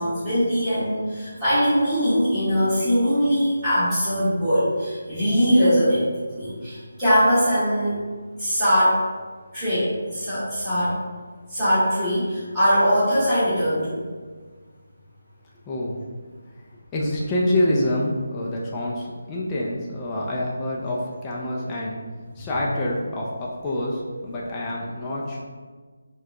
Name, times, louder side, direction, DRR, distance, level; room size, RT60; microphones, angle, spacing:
voice 1, 0.0-8.0 8.4-9.0 9.5-11.0 11.5-14.0 22.3-22.5, equal, 5° right, -17 dB, 1.4 m, -21 dB
voice 2, 15.6-16.0 16.9-22.0 22.4-25.4, left 1 dB, 15° left, -5 dB, 0.4 m, -26 dB
4.7 x 2.3 x 3.6 m, 1.5 s
figure-of-eight pair, 170°, 0 cm